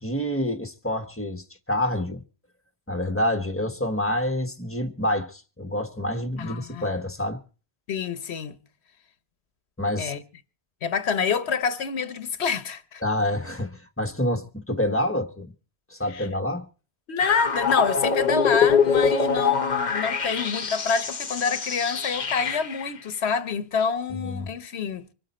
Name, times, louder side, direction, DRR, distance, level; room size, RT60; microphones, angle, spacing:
voice 1, 0.0-2.2 2.9-7.4 9.8-10.1 13.0-15.5 15.9-16.7 24.1-24.5, left 1 dB, 15° left, 1.3 m, -27 dB
voice 2, 6.4-7.0 7.9-8.6 10.0-10.2 10.8-13.0 16.1-16.3 17.1-25.1, left 6 dB, 90° left, 1.2 m, -27 dB
sound 1, 17.2-22.9, left 6 dB, 45° left, 1.0 m, -24 dB
26.0 x 8.9 x 4.3 m
omnidirectional pair, 1.1 m